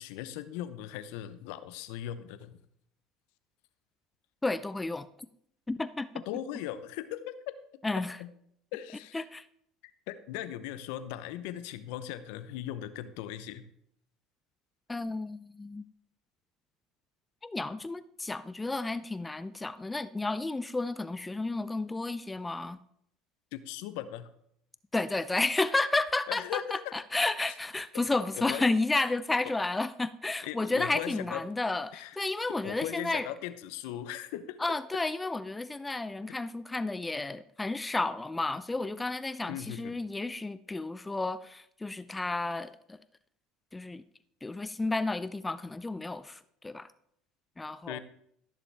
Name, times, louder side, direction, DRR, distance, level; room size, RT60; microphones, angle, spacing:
voice 1, 0.0-2.5 6.3-7.5 8.0-8.3 8.7-9.2 10.1-13.6 23.5-24.3 26.3-26.9 28.4-28.6 30.4-31.4 31.9-32.2 32.6-34.6 39.5-39.9 47.9-48.0, left 12 dB, 75° left, 12 dB, 0.7 m, -38 dB
voice 2, 4.4-5.1 5.7-6.1 7.8-8.2 9.1-9.5 14.9-15.8 17.4-22.8 24.9-33.3 34.6-43.0 43.7-44.0 44.4-46.9 47.6-48.0, left 2 dB, 15° left, 14 dB, 0.5 m, -32 dB
16.0 x 6.9 x 3.4 m, 0.72 s
supercardioid pair, 85°, 0 cm